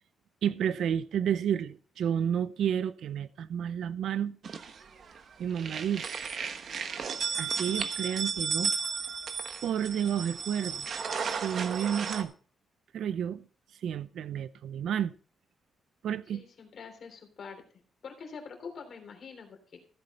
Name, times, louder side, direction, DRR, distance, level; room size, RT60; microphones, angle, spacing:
voice 1, 0.4-4.4 5.4-6.1 7.4-8.7 9.6-10.9 11.4-12.3 12.9-13.4 13.8-15.1 16.0-16.4, right 9 dB, 70° right, 0.6 m, -30 dB
sound 1, 4.4-5.2 5.5-12.2, right 6 dB, 50° right, 1.1 m, -34 dB
voice 2, 16.3-17.6 18.0-19.8, left 5 dB, 50° left, 3.2 m, -45 dB
14.0 x 8.1 x 4.3 m
cardioid pair, 135°, 0 cm